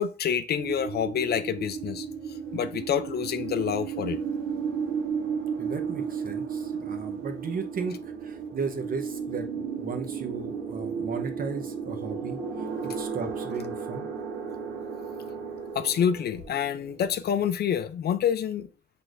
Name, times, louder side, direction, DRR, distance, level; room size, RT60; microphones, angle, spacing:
voice 1, 0.0-2.1 2.5-4.2 15.7-18.7, left 8 dB, 55° left, 0.5 m, -27 dB
sound 1, 0.6-17.5, right 6 dB, 85° right, 1.1 m, -34 dB
voice 2, 5.6-12.4 12.8-14.1, right 4 dB, 45° right, 1.0 m, -35 dB
6.1 x 3.4 x 2.6 m
cardioid pair, 90°, 20 cm